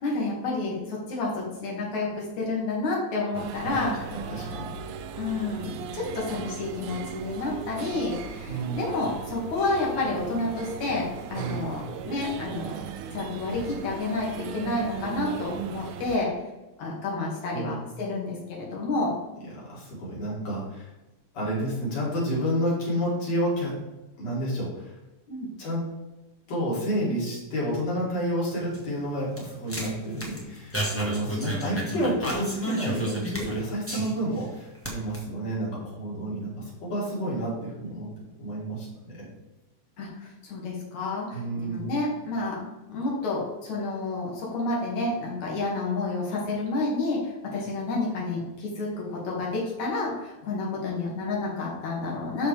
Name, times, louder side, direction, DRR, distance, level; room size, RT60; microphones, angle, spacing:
voice 1, 0.0-3.9 5.2-12.8 13.1-16.3 16.8-19.1 25.3-25.5 40.0-42.6 42.9-52.5, left 3 dB, 80° left, -3 dB, 3.5 m, -30 dB
sound 1, 3.3-16.2, right 8 dB, 90° right, 2.1 m, -37 dB
voice 2, 3.6-4.7 8.5-8.9 11.3-11.7 17.5-17.8 19.5-20.9 21.3-23.7 24.2-24.9 25.6-25.9 26.5-38.1 38.4-39.2 41.3-41.9, right 1 dB, 60° left, -6 dB, 4.2 m, -30 dB
sound 2, 28.5-34.4 34.7-35.1, right 1 dB, 5° left, 1.1 m, -32 dB
12.0 x 5.1 x 3.4 m, 1.0 s
omnidirectional pair, 3.3 m